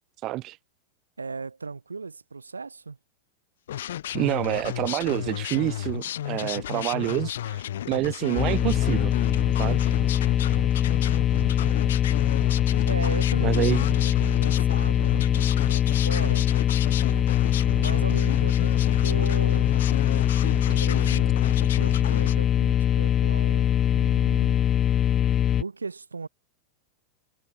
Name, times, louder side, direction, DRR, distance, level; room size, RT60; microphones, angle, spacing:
voice 1, 0.2-0.6 4.1-9.1 9.6-9.9 10.5-10.6 13.4-13.9, right 17 dB, 35° right, 0.9 m, -28 dB
voice 2, 1.2-3.0 10.5-10.7 11.4-11.8 12.8-16.5 17.6-18.7 19.0-21.3 21.6-24.6 25.6-26.3, right 4 dB, 75° right, 1.9 m, -37 dB
sound 1, 3.7-22.3, left 11 dB, 60° left, 1.7 m, -33 dB
sound 2, 8.4-25.6, left 10 dB, 25° left, 0.5 m, -22 dB
figure-of-eight pair, 90°, 0 cm